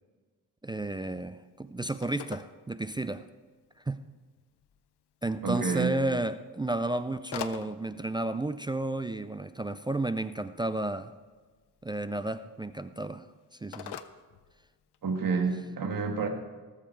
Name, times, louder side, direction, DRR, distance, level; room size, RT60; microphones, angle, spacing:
voice 1, 0.6-3.2 3.9-4.0 5.2-11.1 11.8-13.3 13.6-14.0, right 2 dB, 10° right, 11 dB, 0.3 m, -32 dB
Telephone, 0.7-15.2, left 9 dB, 80° left, 0.8 m, -49 dB
voice 2, 5.4-5.9 15.0-16.3, right 5 dB, 55° right, 4 dB, 1.8 m, -29 dB
18.5 x 7.3 x 4.5 m, 1.4 s
cardioid pair, 110°, 39 cm